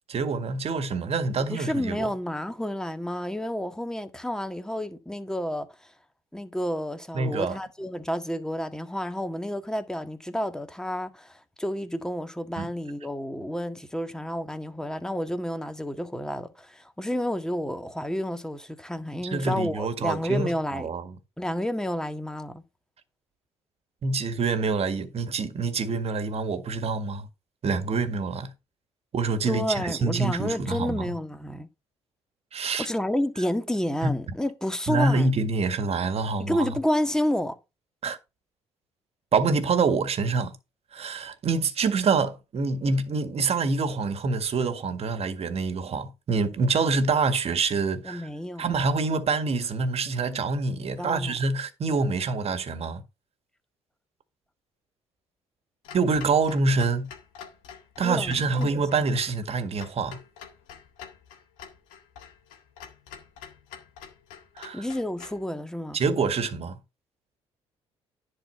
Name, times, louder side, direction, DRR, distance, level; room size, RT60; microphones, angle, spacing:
voice 1, 0.1-2.1 7.1-7.6 12.6-12.7 19.2-21.2 24.0-27.3 27.6-28.5 29.1-31.1 32.5-32.9 34.0-34.2 34.9-36.7 38.0-38.2 39.3-40.6 40.9-48.3 48.6-53.0 55.9-57.1 58.0-60.2 64.6-64.9 65.9-66.8, right 4 dB, 45° right, 1.8 m, -26 dB
voice 2, 1.5-5.7 6.3-20.9 21.4-22.6 29.5-31.7 32.8-35.3 36.4-37.6 48.0-48.7 51.0-51.4 58.0-59.0 64.7-66.0, left 1 dB, 5° left, 1.7 m, -30 dB
Clock, 55.8-65.4, left 7 dB, 75° left, 1.8 m, -47 dB
10.5 x 4.3 x 7.0 m
hypercardioid pair, 55°, 14 cm